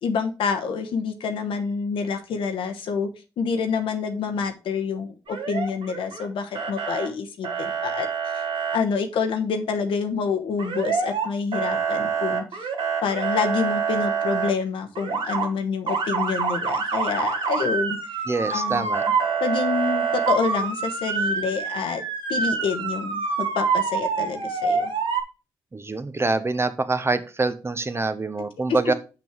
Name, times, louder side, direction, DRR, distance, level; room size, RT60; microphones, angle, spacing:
voice 1, 0.0-3.1 3.4-8.1 8.3-8.5 8.7-12.4 13.0-18.2 18.5-18.9 19.4-22.0 22.3-24.9, left 5 dB, 75° left, 7 dB, 1.0 m, -27 dB
Motor vehicle (road) / Siren, 5.3-6.2 6.5-7.1 7.4-8.8 10.6-11.3 11.5-14.5 14.9-15.5 15.9-25.2, right 5 dB, 70° right, 1.5 m, -26 dB
voice 2, 18.3-19.0 25.7-28.9, right 3 dB, 30° right, 11 dB, 0.9 m, -25 dB
5.9 x 5.4 x 4.5 m, 0.32 s
supercardioid pair, 45°, 9 cm